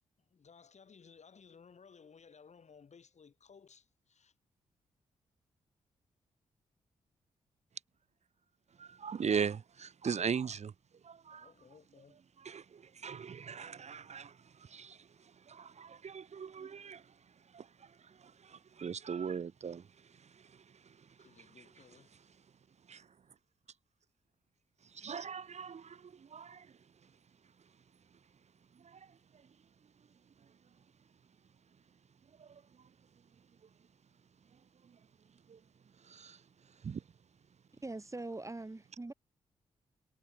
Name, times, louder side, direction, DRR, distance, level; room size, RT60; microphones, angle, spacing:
voice 1, 0.2-4.3 11.3-12.2 20.9-22.2, left 6 dB, 55° left, 4.5 m, -59 dB
voice 2, 8.8-10.7 11.0-11.5 12.4-17.0 17.5-19.9 20.2-20.6 22.9-23.1 24.9-26.7 28.8-29.1 32.4-32.6 35.5-35.6 36.0-36.4 36.8-37.0, right 6 dB, 55° right, 1.0 m, -40 dB
voice 3, 37.8-39.1, right 2 dB, 20° right, 1.5 m, -42 dB
supercardioid pair, 40°, 14 cm